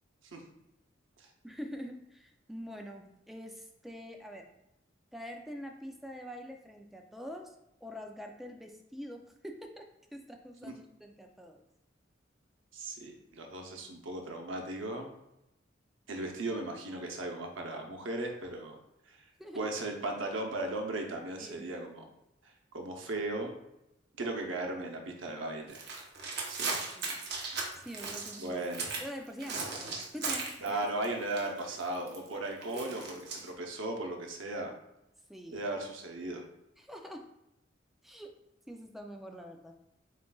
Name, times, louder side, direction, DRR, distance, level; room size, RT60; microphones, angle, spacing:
voice 1, 1.4-4.5 5.1-7.5 7.8-9.8 10.1-11.6 19.4-19.7 21.4-21.7 26.9-27.2 27.7-28.6 29.0-30.8 32.3-33.1 35.3-35.7 36.8-37.3 38.0-38.3 38.7-39.8, equal, ahead, 2 dB, 0.4 m, -45 dB
voice 2, 12.7-15.1 16.1-18.8 19.1-19.2 19.6-22.0 22.4-23.5 24.2-25.8 26.5-26.8 28.4-28.9 30.6-34.7 35.5-36.4, right 2 dB, 90° right, 2 dB, 0.8 m, -37 dB
sound 1, 25.7-29.1 29.4-31.0 31.3-33.5, right 4 dB, 60° right, 0.9 m, -37 dB
7.3 x 2.5 x 2.3 m, 0.84 s
head